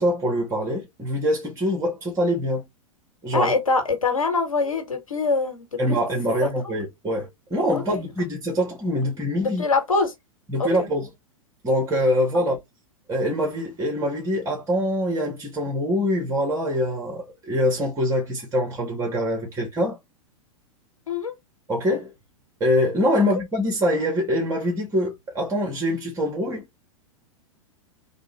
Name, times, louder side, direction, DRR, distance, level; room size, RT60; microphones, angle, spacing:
voice 1, 0.0-2.6 3.2-3.5 5.8-9.6 10.5-11.1 11.6-12.6 13.1-20.0 21.7-22.1 22.6-26.6, equal, 20° right, 1.6 m, -24 dB
voice 2, 3.3-6.0 7.7-8.0 9.4-10.1 10.6-10.9 12.3-12.4 21.1-21.3 23.2-23.3, left 4 dB, 80° left, 1.5 m, -24 dB
3.6 x 2.5 x 3.0 m
figure-of-eight pair, 100°, 17 cm